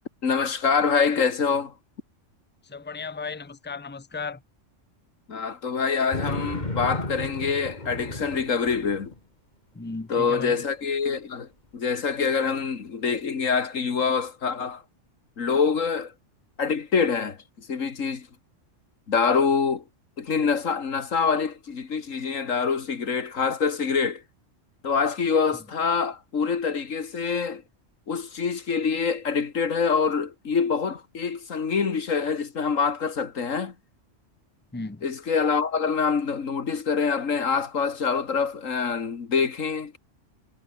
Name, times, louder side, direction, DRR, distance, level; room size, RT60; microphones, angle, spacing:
voice 1, 0.2-1.7 5.3-9.1 10.1-11.5 11.7-14.8 15.4-16.1 16.6-18.3 19.1-19.8 20.2-24.2 24.8-27.6 28.1-33.7 35.0-40.0, left 5 dB, 90° left, 2.2 m, -25 dB
voice 2, 2.6-4.4 9.7-10.6 34.7-35.0, left 4 dB, 10° left, 0.9 m, -35 dB
sound 1, 6.1-9.2, left 1 dB, 35° left, 4.3 m, -33 dB
omnidirectional pair, 1.3 m